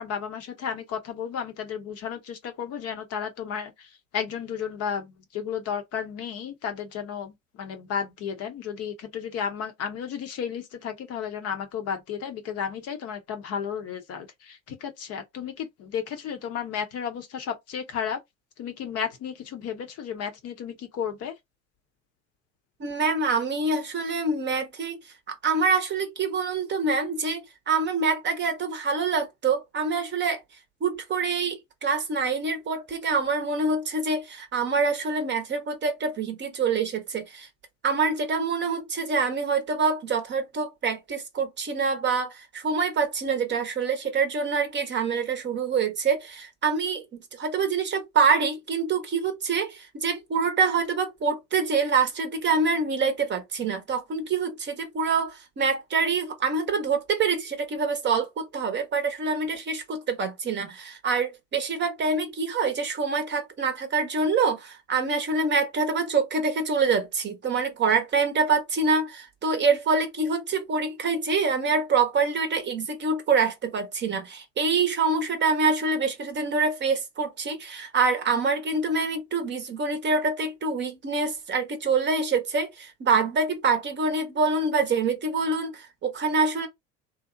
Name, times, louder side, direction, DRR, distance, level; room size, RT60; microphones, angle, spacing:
voice 1, 0.0-18.2 18.6-21.3, left 7 dB, 40° left, 0.6 m, -33 dB
voice 2, 22.8-25.0 25.3-30.4 30.8-37.5 37.8-47.0 47.3-86.7, right 4 dB, 30° right, 0.7 m, -25 dB
2.7 x 2.0 x 2.4 m
figure-of-eight pair, 70°, 39 cm